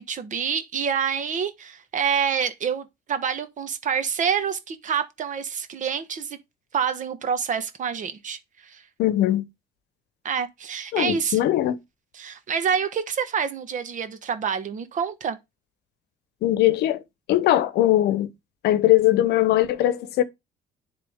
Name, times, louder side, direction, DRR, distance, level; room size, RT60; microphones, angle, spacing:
voice 1, 0.0-6.4 6.7-8.8 10.2-11.4 12.1-15.4, right 7 dB, 50° right, 1.3 m, -27 dB
voice 2, 9.0-9.4 10.9-11.8 16.4-17.0 17.3-18.3 18.6-20.2, left 14 dB, 75° left, 0.9 m, -20 dB
10.5 x 3.7 x 3.6 m
cardioid pair, 110°, 17 cm